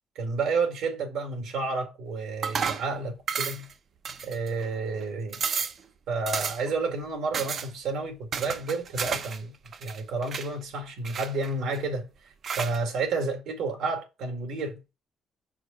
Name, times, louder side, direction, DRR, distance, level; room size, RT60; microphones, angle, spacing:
voice 1, 0.2-3.7 4.2-5.4 6.1-9.5 9.8-12.1 12.6-14.8, right 3 dB, 85° right, 1.9 m, -30 dB
sound 1, 2.4-2.9 3.3-3.7 4.0-4.7 5.0-5.1 5.3-5.8 6.3-6.7 7.3-7.7 8.3-9.4 9.7-10.5 11.0-11.8 12.4-12.8, right 6 dB, 55° right, 0.7 m, -32 dB
4.9 x 4.7 x 4.9 m
cardioid pair, 90°, 0 cm